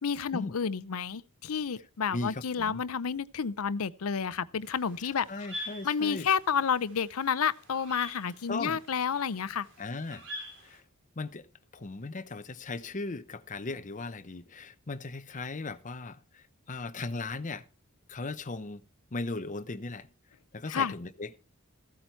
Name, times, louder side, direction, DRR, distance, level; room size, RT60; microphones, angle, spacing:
voice 1, 0.0-5.3 5.5-9.7 20.7-21.0, left 6 dB, 80° left, 0.6 m, -30 dB
voice 2, 2.1-2.8 5.3-6.3 8.5-8.8 9.8-10.3 10.6-10.8 11.2-11.5 11.7-17.6 18.1-18.8 19.1-20.1 20.5-21.3, left 3 dB, 35° left, 0.8 m, -37 dB
sound 1, 4.6-10.8, left 1 dB, 60° right, 4.2 m, -46 dB
14.5 x 8.6 x 4.5 m
head